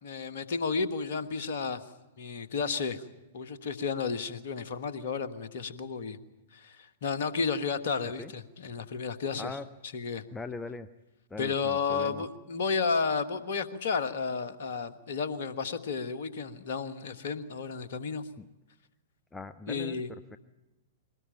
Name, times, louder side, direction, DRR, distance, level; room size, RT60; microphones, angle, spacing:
voice 1, 0.0-1.8 2.2-3.0 3.3-6.2 6.5-9.6 9.9-10.2 11.4-18.2 19.7-20.1, left 5 dB, 55° left, 10 dB, 1.5 m, -32 dB
voice 2, 10.3-10.9 11.3-12.2 18.4-18.5 19.3-20.4, left 3 dB, 10° left, 11 dB, 0.7 m, -41 dB
22.5 x 19.0 x 9.1 m, 1.0 s
figure-of-eight pair, 105°, 0 cm